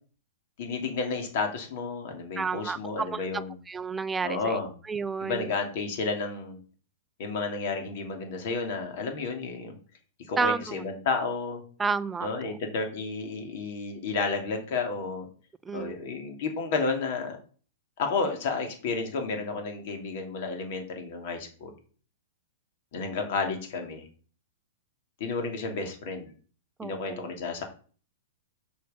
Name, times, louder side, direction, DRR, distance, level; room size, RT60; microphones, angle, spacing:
voice 1, 0.6-3.6 4.2-4.7 5.2-6.6 7.2-9.8 10.3-11.6 12.2-15.3 15.7-17.4 18.0-21.7 22.9-24.0 25.2-26.3 26.8-27.6, left 4 dB, 55° left, 4 dB, 2.8 m, -31 dB
voice 2, 2.4-4.6 4.9-5.5 10.4-10.8 11.8-12.6 15.7-16.1 26.8-27.2, right 5 dB, 10° right, 13 dB, 0.6 m, -31 dB
6.6 x 6.5 x 7.0 m, 0.42 s
hypercardioid pair, 140°, 0 cm